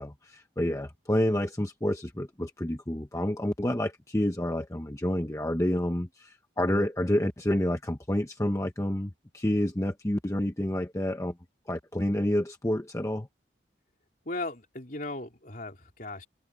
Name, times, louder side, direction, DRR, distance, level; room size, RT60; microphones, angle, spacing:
voice 1, 0.0-11.3 11.7-13.3, left 1 dB, 15° left, 0.9 m, -29 dB
voice 2, 14.2-16.3, left 2 dB, 45° left, 3.7 m, -37 dB
head